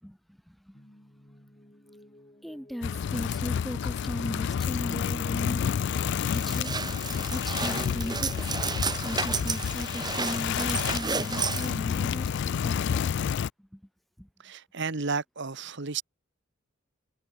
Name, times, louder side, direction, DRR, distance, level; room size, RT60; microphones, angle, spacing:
voice 1, 0.0-0.8 2.4-5.7 6.3-6.7 7.3-8.6 9.0-13.0 13.6-13.8 14.2-14.3, equal, ahead, 1.8 m, -38 dB
sound 1, 0.7-9.4, left 1 dB, 30° left, 3.9 m, -51 dB
sound 2, 2.8-13.5, left 7 dB, 55° left, 0.3 m, -30 dB
sound 3, 5.6-12.9, right 5 dB, 20° right, 1.1 m, -33 dB
voice 2, 14.4-16.0, right 4 dB, 60° right, 1.3 m, -32 dB
head